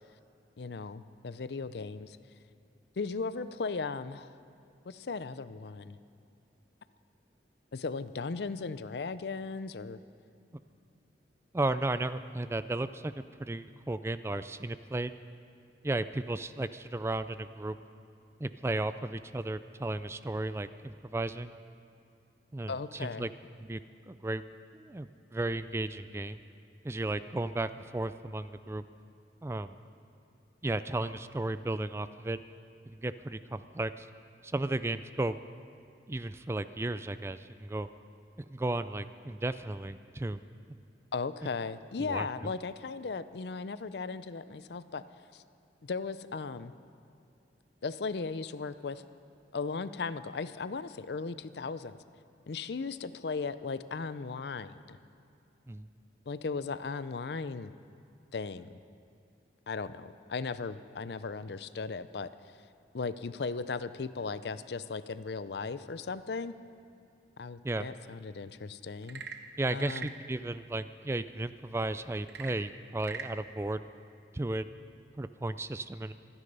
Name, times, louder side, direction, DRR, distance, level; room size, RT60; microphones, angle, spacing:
voice 1, 0.6-2.2 3.0-4.3 4.9-6.0 7.7-10.0 22.7-23.3 41.1-45.0 45.3-45.4 45.8-46.7 47.8-49.0 49.5-52.0 52.5-55.0 56.3-57.7 58.3-58.8 59.7-62.3 62.9-66.5 67.4-69.2 69.7-70.1, left 4 dB, 70° left, 14 dB, 0.5 m, -37 dB
voice 2, 11.5-15.1 15.8-17.8 18.4-21.5 22.5-23.3 23.6-23.8 24.1-24.4 24.7-26.4 26.8-28.8 29.4-29.8 30.6-32.4 32.9-34.1 34.4-35.4 36.1-37.9 38.4-40.4 42.0-42.5 55.7-55.9 67.6-67.9 69.6-73.8 74.3-74.7 75.2-76.1, right 2 dB, 15° right, 13 dB, 0.3 m, -34 dB
Frog / Percussion / Wood, 68.9-70.2 72.2-73.4, right 5 dB, 70° right, 1.0 m, -43 dB
25.0 x 9.9 x 5.4 m, 2.6 s
head